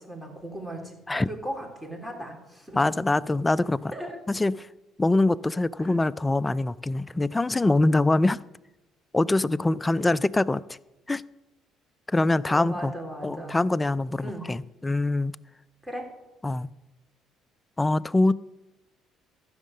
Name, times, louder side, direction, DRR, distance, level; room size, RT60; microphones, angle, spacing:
voice 1, 0.0-1.0 1.3-3.0 3.9-4.2 5.8-6.0 12.5-13.6 14.2-14.5 15.8-16.1, right 1 dB, 5° right, 3.4 m, -37 dB
voice 2, 2.8-3.9 4.3-4.5 5.0-8.4 9.1-10.6 11.1-11.2 12.1-12.9 13.2-15.3 16.4-16.7 17.8-18.3, left 2 dB, 20° left, 0.4 m, -24 dB
14.5 x 6.4 x 6.5 m
hypercardioid pair, 55°, 0 cm